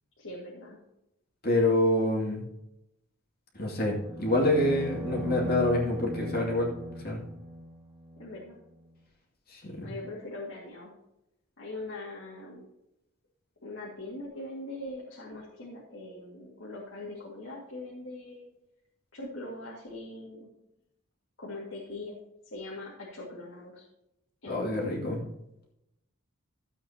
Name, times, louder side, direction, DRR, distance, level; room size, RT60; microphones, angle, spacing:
voice 1, 0.2-0.8 8.2-8.6 9.8-10.9 11.6-12.7 13.6-18.5 19.1-20.5 21.4-22.2 22.5-23.9 24.4-25.0, left 2 dB, 60° left, -6 dB, 2.2 m, -41 dB
voice 2, 1.4-2.4 3.5-7.2 9.5-9.9 24.5-25.2, left 1 dB, 45° left, -2 dB, 2.5 m, -27 dB
sound 1, 4.0-8.3, equal, 10° right, 1.5 m, -38 dB
13.5 x 8.2 x 2.9 m, 0.86 s
head